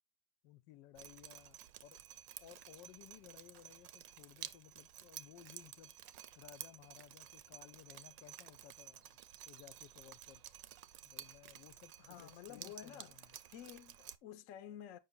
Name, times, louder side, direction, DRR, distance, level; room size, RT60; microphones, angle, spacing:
voice 1, 0.4-2.0 2.4-5.9 6.4-9.2 9.5-10.4 11.0-13.3, left 12 dB, 80° left, 1.2 m, -59 dB
Drip, 1.0-14.2, right 12 dB, 80° right, 1.3 m, -53 dB
voice 2, 12.0-13.2 13.5-15.0, left 10 dB, 60° left, 0.9 m, -51 dB
7.1 x 5.4 x 3.8 m
omnidirectional pair, 1.9 m